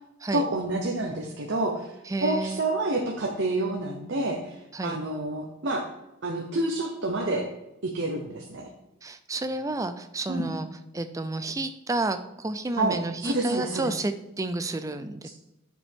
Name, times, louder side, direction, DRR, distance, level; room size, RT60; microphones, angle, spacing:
voice 1, 0.3-1.9 2.2-5.8 6.2-7.5 7.8-8.7 10.3-10.5 12.8-14.0 15.2-15.3, right 2 dB, 55° right, 1 dB, 0.9 m, -28 dB
voice 2, 2.1-2.6 4.7-5.0 9.0-10.7 10.9-15.3, right 2 dB, 15° right, 9 dB, 0.4 m, -30 dB
9.4 x 5.2 x 3.6 m, 0.92 s
head